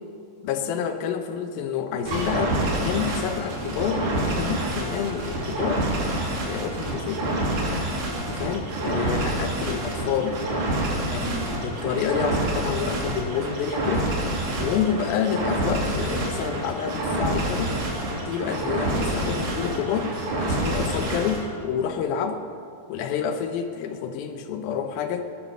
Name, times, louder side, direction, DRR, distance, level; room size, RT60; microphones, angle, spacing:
voice 1, 0.4-5.9 6.4-7.2 8.2-10.4 11.1-14.1 14.6-17.8 18.1-20.1 20.4-22.4 22.9-25.3, left 7 dB, 85° left, 7 dB, 2.7 m, -28 dB
sound 1, 2.1-21.4, right 1 dB, 60° right, 3.8 m, -27 dB
18.5 x 9.9 x 6.7 m, 2.6 s
omnidirectional pair, 4.1 m